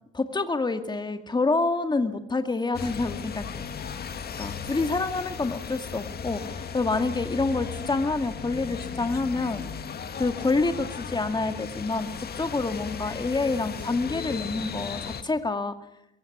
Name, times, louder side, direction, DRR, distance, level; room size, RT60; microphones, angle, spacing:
voice 1, 0.1-3.4 4.4-9.6 10.2-15.7, left 3 dB, 20° left, 8 dB, 2.1 m, -27 dB
sound 1, 2.7-15.2, left 6 dB, 55° left, 2.1 m, -36 dB
22.5 x 15.5 x 9.8 m, 0.85 s
cardioid pair, 90°, 20 cm